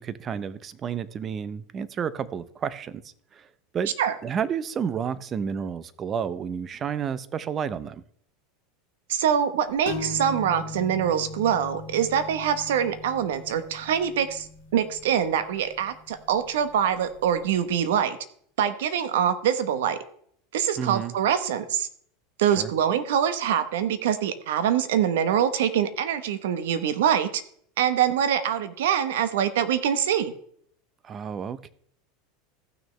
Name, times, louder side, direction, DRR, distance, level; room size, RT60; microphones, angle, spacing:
voice 1, 0.0-3.5 3.7-3.9 4.2-8.0 20.8-21.1 22.6-22.7 31.0-31.7, right 7 dB, 30° right, 0.6 m, -31 dB
voice 2, 9.1-14.5 14.7-18.2 18.6-20.0 20.5-21.9 22.4-27.4 27.8-30.3, right 9 dB, 80° right, 1.0 m, -24 dB
sound 1, 9.9-17.4, left 3 dB, 85° left, 1.6 m, -40 dB
15.0 x 6.3 x 3.2 m
supercardioid pair, 120°, 0 cm